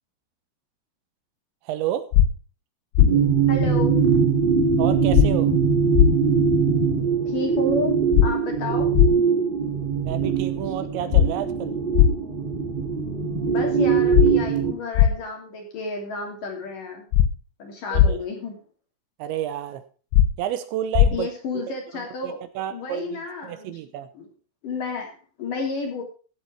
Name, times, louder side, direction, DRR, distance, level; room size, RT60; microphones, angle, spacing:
voice 1, 1.7-2.1 4.8-5.5 10.0-11.7 17.9-18.2 19.2-19.8 20.4-21.3 21.5-21.6 21.9-24.1, right 11 dB, 85° right, 11 dB, 3.3 m, -30 dB
sound 1, 2.1-2.3 2.9-3.1 5.1-5.3 5.9-6.1 8.1-8.3 8.9-9.1 11.1-11.3 11.9-12.1 14.1-14.3 14.9-15.1 17.1-17.3 17.9-18.1 20.1-20.3 20.9-21.1, left 11 dB, 85° left, 3.3 m, -15 dB
sound 2, 3.0-14.7, right 6 dB, 35° right, 0.8 m, -22 dB
voice 2, 3.5-4.1 6.9-8.9 13.5-17.1 17.6-18.6 21.1-22.4 22.7-23.8 24.1-24.3 24.6-26.0, left 3 dB, 50° left, 2 dB, 4.2 m, -31 dB
15.5 x 8.2 x 4.4 m, 0.37 s
omnidirectional pair, 5.3 m